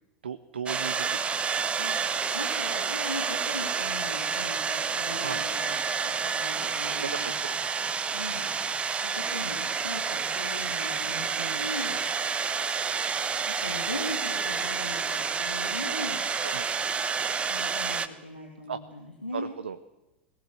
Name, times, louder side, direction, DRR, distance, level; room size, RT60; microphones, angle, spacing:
voice 1, 0.2-1.4 5.2-5.4 7.0-7.3 11.3-11.7 16.4-16.7 18.7-18.8 19.3-19.8, right 7 dB, 70° right, 9 dB, 0.9 m, -36 dB
sound 1, 0.7-18.1, right 6 dB, 20° right, 1.3 m, -29 dB
voice 2, 1.7-7.3 8.1-12.0 13.5-16.6 17.4-19.5, left 1 dB, 85° left, 1 dB, 3.3 m, -40 dB
21.5 x 18.5 x 8.0 m, 0.98 s
figure-of-eight pair, 85°, 6 cm